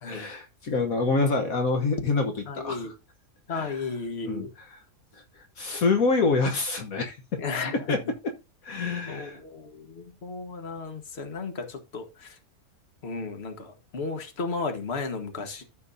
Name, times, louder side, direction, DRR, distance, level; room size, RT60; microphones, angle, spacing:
voice 1, 0.0-2.9 3.5-3.8 4.2-4.8 5.1-7.4 7.9-8.0 8.6-9.4, left 3 dB, 65° left, 1.5 m, -27 dB
voice 2, 2.4-2.9 3.5-4.5 7.4-8.0 9.1-12.4 13.0-15.6, left 4 dB, 45° left, 1.6 m, -34 dB
14.0 x 5.2 x 2.7 m
omnidirectional pair, 1.6 m